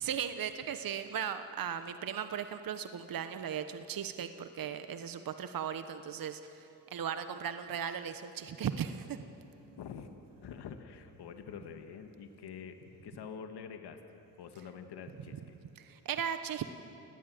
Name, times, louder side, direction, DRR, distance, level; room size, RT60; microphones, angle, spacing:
voice 1, 0.0-9.2 15.8-16.7, right 8 dB, 55° right, 10 dB, 1.2 m, -37 dB
voice 2, 9.8-10.1 10.4-12.8 13.0-14.0 14.4-15.6, left 7 dB, 70° left, 6 dB, 1.8 m, -46 dB
28.5 x 18.5 x 7.8 m, 2.9 s
supercardioid pair, 50°, 42 cm